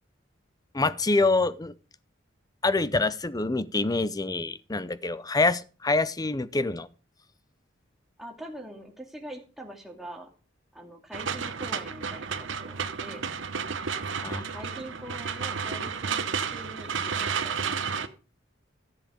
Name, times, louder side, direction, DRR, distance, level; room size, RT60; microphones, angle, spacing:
voice 1, 0.7-1.7 2.6-6.9 14.2-14.4, left 3 dB, 20° left, 0.6 m, -26 dB
voice 2, 8.2-10.3 10.7-13.3 14.3-18.1, right 1 dB, ahead, 2.5 m, -44 dB
sound 1, 11.1-18.1, right 6 dB, 65° right, 1.0 m, -32 dB
14.0 x 7.7 x 5.1 m
head